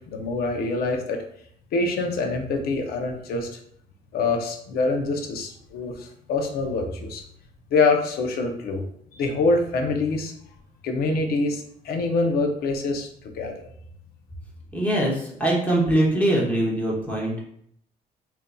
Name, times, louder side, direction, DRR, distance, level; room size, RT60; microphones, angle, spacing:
voice 1, 0.1-1.2 1.7-3.6 4.1-7.2 7.7-8.8 9.1-10.3 10.8-13.1 13.3-13.5, left 3 dB, 65° left, 4 dB, 0.7 m, -25 dB
voice 2, 14.7-17.4, right 1 dB, 10° left, -4 dB, 1.0 m, -22 dB
3.7 x 2.7 x 2.2 m, 0.67 s
cardioid pair, 110°, 17 cm